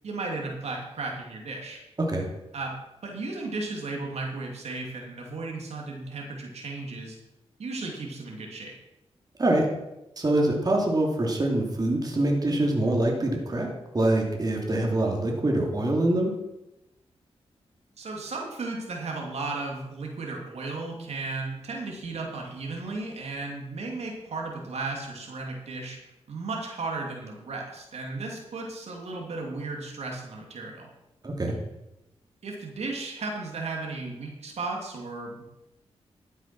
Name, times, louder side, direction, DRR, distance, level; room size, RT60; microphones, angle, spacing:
voice 1, 0.0-1.8 2.5-2.7 3.0-7.2 7.6-8.7 18.0-26.0 26.3-30.9 32.4-35.4, right 3 dB, 75° right, 0 dB, 2.6 m, -35 dB
voice 2, 10.2-16.3 31.2-31.5, right 1 dB, 35° right, 0 dB, 2.7 m, -24 dB
12.5 x 7.5 x 6.0 m, 0.94 s
cardioid pair, 75°, 11 cm